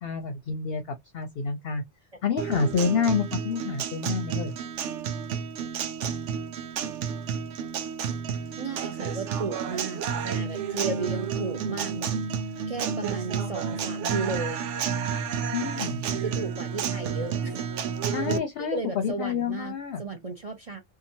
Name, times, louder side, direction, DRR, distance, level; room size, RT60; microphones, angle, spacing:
voice 1, 0.0-1.8 2.2-4.6 15.5-16.0 18.0-20.0, left 6 dB, 60° left, 0.7 m, -28 dB
Guitar, 2.4-18.4, right 7 dB, 70° right, 0.9 m, -31 dB
voice 2, 8.6-12.1 12.7-14.9 16.2-17.6 18.2-18.4 18.7-20.8, right 4 dB, 40° right, 0.6 m, -34 dB
2.8 x 2.2 x 2.6 m
omnidirectional pair, 1.3 m